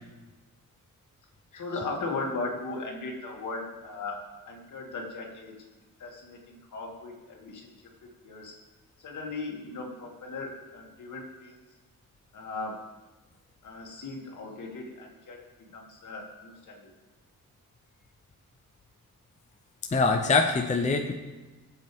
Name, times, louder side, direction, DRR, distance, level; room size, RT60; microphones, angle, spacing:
voice 1, 1.5-4.2 4.5-5.5 6.0-7.7 8.0-8.5 9.0-11.6 12.3-12.8 13.6-15.4 15.7-16.9, left 3 dB, 60° left, -1 dB, 2.5 m, -37 dB
voice 2, 19.9-21.1, left 4 dB, 20° left, 3 dB, 0.7 m, -23 dB
21.0 x 8.1 x 3.6 m, 1.2 s
wide cardioid pair, 160°, 33 cm